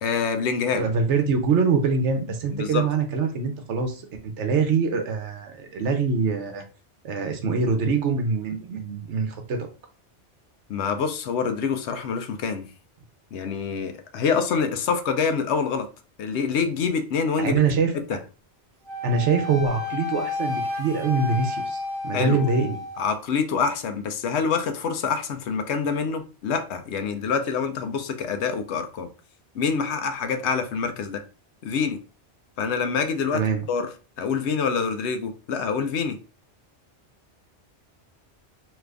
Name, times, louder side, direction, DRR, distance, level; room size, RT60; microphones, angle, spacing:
voice 1, 0.0-0.9 2.5-2.9 10.7-12.7 13.3-15.9 16.2-17.6 18.1-18.2 22.1-22.4 23.0-29.1 29.5-31.2 31.6-32.0 32.6-33.4 33.7-33.9 34.2-36.2, left 5 dB, 75° left, 0.9 m, -26 dB
voice 2, 0.7-6.6 7.0-9.7 17.4-17.9 19.0-22.8 33.3-33.7, right 5 dB, 85° right, 1.1 m, -24 dB
Wind instrument woodwind instrument, 18.9-23.1, left 3 dB, 55° right, 0.7 m, -31 dB
3.0 x 2.4 x 3.3 m
omnidirectional pair, 1.2 m